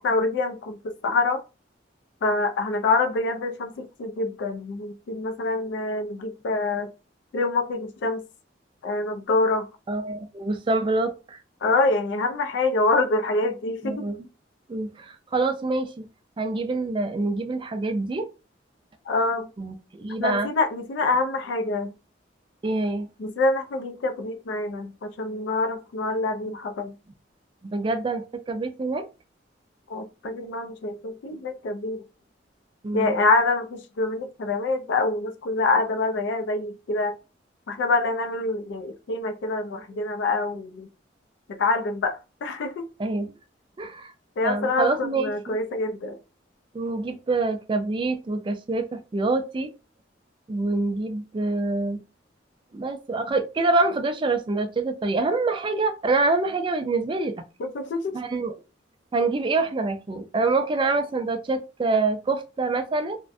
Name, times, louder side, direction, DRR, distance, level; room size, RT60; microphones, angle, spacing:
voice 1, 0.0-1.4 2.2-6.9 7.3-8.2 8.8-9.7 11.6-14.1 19.1-19.5 20.2-21.9 23.2-26.9 29.9-32.0 32.9-37.2 37.7-40.9 41.5-42.9 44.4-46.2 57.6-58.2, left 3 dB, 75° left, 0.3 m, -26 dB
voice 2, 9.9-11.4 13.8-14.2 14.7-16.0 16.4-18.3 19.6-20.5 22.6-23.1 26.5-26.6 27.7-29.0 32.8-33.2 43.0-43.3 43.8-44.1 44.4-45.6 46.7-49.7 50.5-52.0 52.7-57.3 58.1-58.5 59.1-63.2, right 3 dB, 25° right, 0.3 m, -26 dB
2.4 x 2.1 x 2.5 m
head